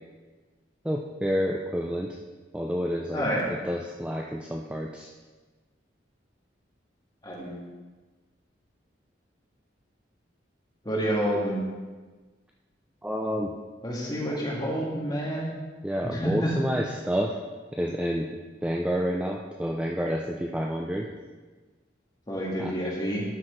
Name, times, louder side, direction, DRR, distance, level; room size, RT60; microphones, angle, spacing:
voice 1, 0.8-2.2 2.5-3.2 3.6-5.1 13.0-13.5 15.8-17.4 17.7-21.1 22.6-22.7, equal, 5° right, 0 dB, 0.4 m, -29 dB
voice 2, 7.2-7.6 10.8-11.6 13.8-15.5 16.1-16.5 22.3-23.2, equal, 20° left, -4 dB, 1.7 m, -28 dB
11.5 x 6.0 x 3.2 m, 1.3 s
head